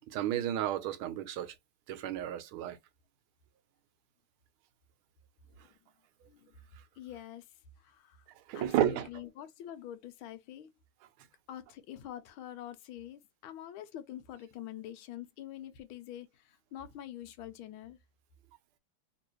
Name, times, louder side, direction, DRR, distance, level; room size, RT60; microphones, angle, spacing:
voice 1, 0.1-1.5 1.9-2.8 8.5-9.2, right 11 dB, 85° right, 1.5 m, -32 dB
voice 2, 7.0-7.5 7.8-8.2 8.5-10.7 11.5-18.0, left 11 dB, 85° left, 1.4 m, -46 dB
3.3 x 3.0 x 3.0 m
omnidirectional pair, 2.3 m